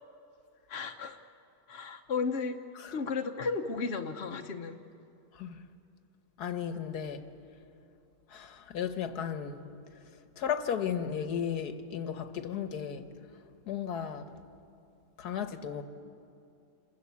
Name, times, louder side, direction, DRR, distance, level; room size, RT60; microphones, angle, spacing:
voice 1, 0.7-1.2 1.7-2.6 2.9-4.8, left 4 dB, 45° left, 1.1 m, -34 dB
voice 2, 5.3-5.6 6.4-7.2 8.3-9.7 10.4-13.1 13.7-14.3 15.2-15.8, left 8 dB, 75° left, 1.7 m, -35 dB
27.5 x 21.0 x 8.4 m
omnidirectional pair, 1.7 m